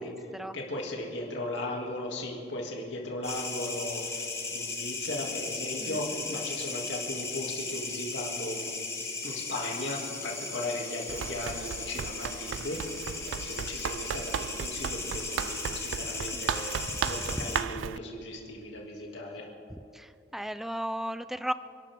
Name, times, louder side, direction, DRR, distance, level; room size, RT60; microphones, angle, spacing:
voice 1, 0.0-8.7 9.2-19.5, left 1 dB, 70° left, -1 dB, 2.9 m, -37 dB
sound 1, 3.2-17.6, left 3 dB, 15° left, 1.4 m, -37 dB
Run, 11.1-18.0, right 8 dB, 85° right, 0.3 m, -35 dB
voice 2, 19.9-21.5, equal, ahead, 13 dB, 0.4 m, -35 dB
29.0 x 12.5 x 3.8 m, 2.7 s
head